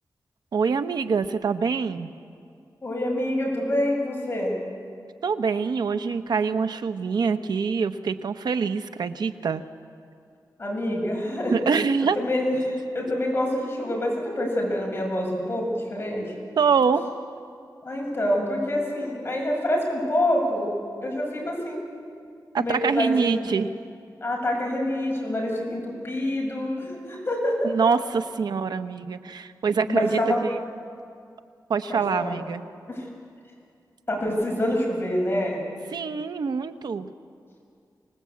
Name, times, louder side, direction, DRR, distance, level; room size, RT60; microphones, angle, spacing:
voice 1, 0.5-2.1 5.2-9.6 11.5-12.2 16.6-17.0 22.5-23.7 27.6-30.2 30.5-30.6 31.7-32.6 35.9-37.1, right 5 dB, 80° right, 10 dB, 1.0 m, -25 dB
voice 2, 2.8-4.6 10.6-11.5 12.0-16.3 17.8-20.7 21.0-21.8 22.5-23.4 24.2-27.7 29.9-30.4 31.9-32.4 32.9-33.1 34.1-35.6, left 1 dB, 30° left, -2 dB, 7.0 m, -26 dB
26.0 x 19.5 x 8.6 m, 2.3 s
wide cardioid pair, 120°, 7 cm